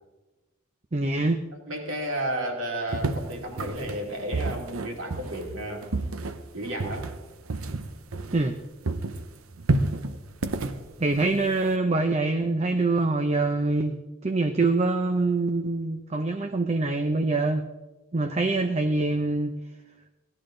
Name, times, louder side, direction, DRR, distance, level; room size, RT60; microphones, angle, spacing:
voice 1, 0.9-1.4 8.3-8.6 11.0-14.0 14.2-17.6 18.1-19.6, right 2 dB, 30° right, 7 dB, 0.6 m, -24 dB
voice 2, 1.7-5.9 6.5-7.1, right 1 dB, 70° right, 0 dB, 2.6 m, -32 dB
sound 1, 2.9-8.6 8.8-11.8, right 2 dB, 90° right, 0.8 m, -30 dB
17.0 x 12.0 x 3.8 m, 1.2 s
head